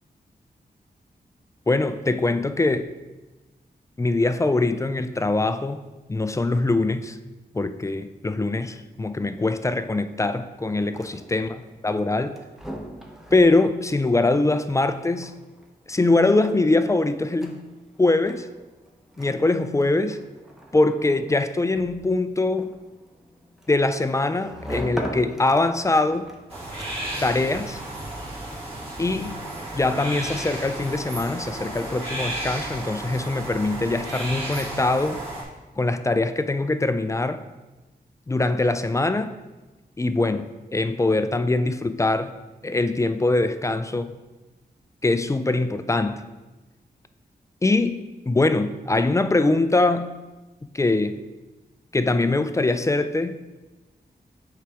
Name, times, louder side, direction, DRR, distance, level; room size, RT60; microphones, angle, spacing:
voice 1, 1.7-2.9 4.0-5.8 6.1-7.2 7.5-11.5 11.8-12.4 13.3-15.3 15.9-17.6 18.0-18.5 19.2-20.2 20.7-22.7 23.7-26.3 27.2-27.8 29.0-29.4 29.7-35.2 35.8-37.4 38.3-39.3 40.0-42.4 42.6-44.2 45.0-46.2 47.6-50.2 50.7-51.2 51.9-53.4, left 2 dB, 20° left, 0.4 m, -23 dB
sound 1, 10.7-27.3, equal, ahead, 0.9 m, -41 dB
sound 2, 26.5-35.4, right 1 dB, 35° right, 2.2 m, -33 dB
7.5 x 4.8 x 3.4 m
cardioid pair, 75°, 17 cm